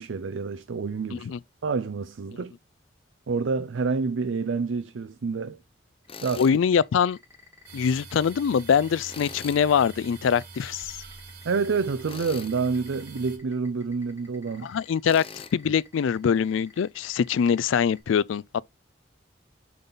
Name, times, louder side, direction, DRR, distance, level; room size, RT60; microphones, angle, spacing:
voice 1, 0.0-1.3 1.6-2.5 3.3-5.6 6.2-6.5 11.4-14.7, right 4 dB, 75° right, 0.5 m, -28 dB
sound 1, 6.0-18.0, left 4 dB, 15° right, 1.6 m, -52 dB
Tools, 6.1-6.6 9.1-9.6 12.0-12.6 15.0-15.5, left 6 dB, 30° left, 0.6 m, -41 dB
voice 2, 6.4-7.2 7.7-11.0 14.6-15.2 15.5-18.6, left 7 dB, 80° left, 0.3 m, -23 dB
sound 2, 7.6-13.4, right 4 dB, 55° right, 2.5 m, -45 dB
6.9 x 4.0 x 3.8 m
head